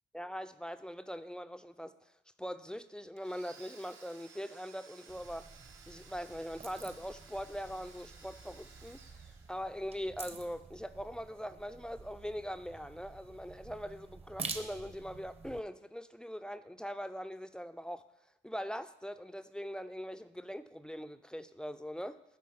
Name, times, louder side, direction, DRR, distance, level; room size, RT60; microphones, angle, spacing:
voice 1, 0.1-1.9 2.4-5.5 5.9-9.0 9.5-18.1 18.4-22.2, equal, 5° left, 0.3 m, -41 dB
Domestic sounds home sounds, 3.2-10.0, right 5 dB, 80° right, 1.0 m, -58 dB
sound 1, 5.1-15.6, right 4 dB, 30° right, 0.7 m, -48 dB
9.6 x 3.6 x 5.8 m
cardioid pair, 90°, 20 cm